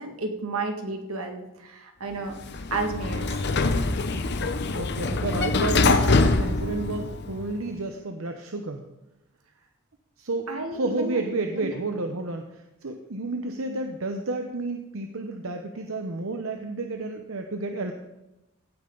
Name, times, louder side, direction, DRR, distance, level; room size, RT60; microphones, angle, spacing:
voice 1, 0.0-2.3 2.7-3.4 10.5-11.2 11.5-11.7, right 3 dB, 90° right, 4 dB, 2.0 m, -32 dB
Sliding door, 2.3-7.5, left 3 dB, 50° left, 0.8 m, -24 dB
voice 2, 4.7-8.8 10.2-10.5 10.7-17.9, right 2 dB, 75° right, 5 dB, 0.9 m, -31 dB
16.5 x 8.9 x 3.9 m, 0.96 s
head